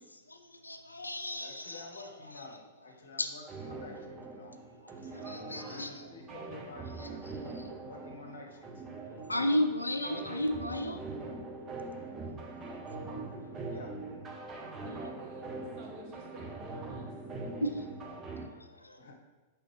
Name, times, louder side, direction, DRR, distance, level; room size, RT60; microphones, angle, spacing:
voice 1, 0.1-2.1 2.4-2.5 3.2-3.3 5.1-5.9 7.0-7.7 9.3-11.0 17.6-17.8 18.5-19.1, left 1 dB, 85° left, 6 dB, 0.3 m, -34 dB
voice 2, 1.3-4.5 5.0-7.2 7.8-8.9 13.7-14.0 19.0-19.1, left 3 dB, 70° left, 2 dB, 0.7 m, -50 dB
sound 1, 3.5-18.5, right 3 dB, 25° right, 0.6 m, -42 dB
voice 3, 5.2-5.9 9.4-9.9 14.8-15.5 15.7-17.1, right 2 dB, 40° right, -1 dB, 1.1 m, -52 dB
5.1 x 3.3 x 3.1 m, 1.2 s
figure-of-eight pair, 95°, 0 cm